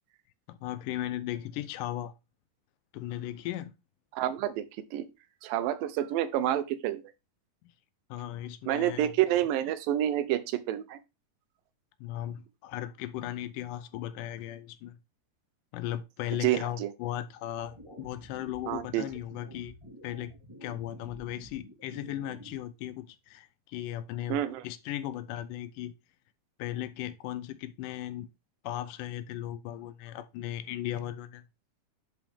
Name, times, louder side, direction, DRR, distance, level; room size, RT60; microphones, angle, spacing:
voice 1, 0.5-2.1 2.9-3.7 8.1-9.1 12.0-15.0 15.7-19.7 20.0-20.3 20.6-25.9 26.6-28.3 28.6-31.4, left 12 dB, 80° left, 2.0 m, -37 dB
voice 2, 4.1-4.7 4.9-5.1 5.4-7.0 8.7-11.0 16.4-16.9 18.7-19.1 24.3-24.6, right 12 dB, 85° right, 2.5 m, -28 dB
sound 1, 17.6-22.6, equal, 15° right, 1.1 m, -50 dB
10.5 x 4.0 x 3.5 m
omnidirectional pair, 3.9 m